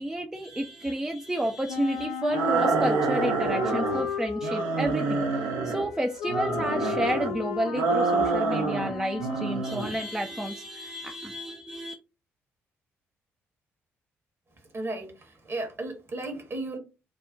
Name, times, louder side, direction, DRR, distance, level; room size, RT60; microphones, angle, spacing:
voice 1, 0.0-5.2 5.6-11.9, right 1 dB, 10° right, 0.4 m, -31 dB
Wind instrument woodwind instrument, 1.7-9.8, left 7 dB, 70° left, 0.3 m, -35 dB
sound 1, 2.3-4.1 4.4-5.9 6.3-7.3 7.7-8.9 9.2-9.9, right 4 dB, 65° right, 0.5 m, -27 dB
voice 2, 14.7-15.1 15.4-16.8, right 2 dB, 35° right, 1.0 m, -34 dB
2.4 x 2.1 x 3.7 m
figure-of-eight pair, 40°, 7 cm